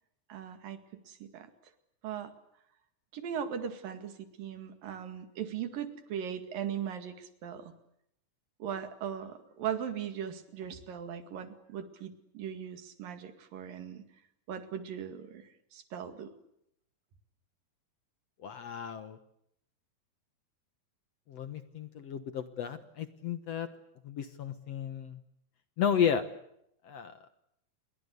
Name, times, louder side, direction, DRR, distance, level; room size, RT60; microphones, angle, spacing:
voice 1, 0.3-0.8 1.1-1.5 2.0-2.3 3.1-7.7 8.6-14.0 14.5-16.3, right 8 dB, 75° right, 9 dB, 3.7 m, -39 dB
voice 2, 18.4-19.2 21.3-23.7 24.0-25.2 25.8-26.2 26.8-27.3, left 8 dB, 60° left, 11 dB, 1.9 m, -33 dB
29.0 x 22.5 x 8.2 m, 0.76 s
omnidirectional pair, 4.1 m